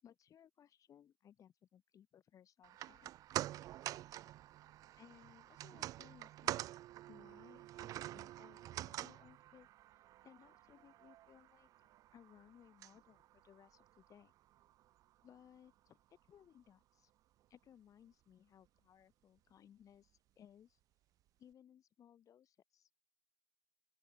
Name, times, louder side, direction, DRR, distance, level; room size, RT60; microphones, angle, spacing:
voice 1, 0.0-3.1 4.9-6.6 7.1-9.7 10.2-11.7 12.1-14.3 15.2-17.1 17.5-20.8 21.4-22.9, left 9 dB, 30° left, 4.7 m, -63 dB
sound 1, 2.6-15.0 15.3-15.4, right 14 dB, 30° right, 0.3 m, -47 dB
open air
hypercardioid pair, 115°, 11 cm